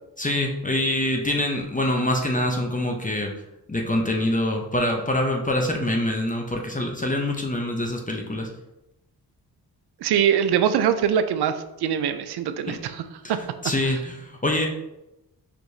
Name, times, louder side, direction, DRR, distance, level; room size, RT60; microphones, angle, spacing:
voice 1, 0.2-3.3 3.7-8.5 12.7-12.8 13.2-13.3 13.6-14.7, left 1 dB, 20° left, 2 dB, 0.7 m, -25 dB
voice 2, 10.0-13.0 13.3-13.4 13.8-13.9, right 8 dB, 65° right, 10 dB, 0.5 m, -23 dB
4.6 x 3.0 x 2.7 m, 0.92 s
supercardioid pair, 40°, 42 cm